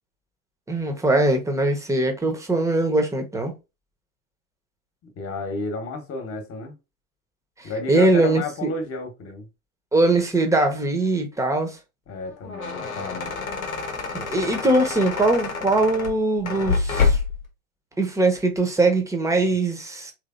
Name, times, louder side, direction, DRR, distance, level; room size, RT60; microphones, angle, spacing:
voice 1, 0.7-3.5 7.6-8.7 9.9-11.8 14.1-17.2 18.0-20.1, right 2 dB, 10° right, 1.0 m, -21 dB
voice 2, 5.2-6.7 7.6-9.5 12.1-13.3 19.4-19.5, left 3 dB, 35° left, 1.3 m, -31 dB
sound 1, 12.2-17.5, left 5 dB, 90° left, 1.0 m, -27 dB
3.4 x 3.3 x 2.4 m
hypercardioid pair, 80°, 40 cm